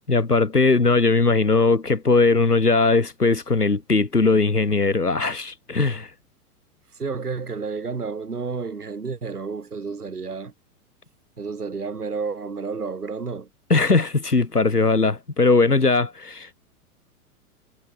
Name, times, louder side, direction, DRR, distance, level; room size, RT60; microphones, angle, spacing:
voice 1, 0.1-6.1 13.7-16.5, left 3 dB, 85° left, 2.8 m, -19 dB
voice 2, 6.9-10.5 11.4-13.5, right 4 dB, 80° right, 7.3 m, -31 dB
figure-of-eight pair, 100°, 45 cm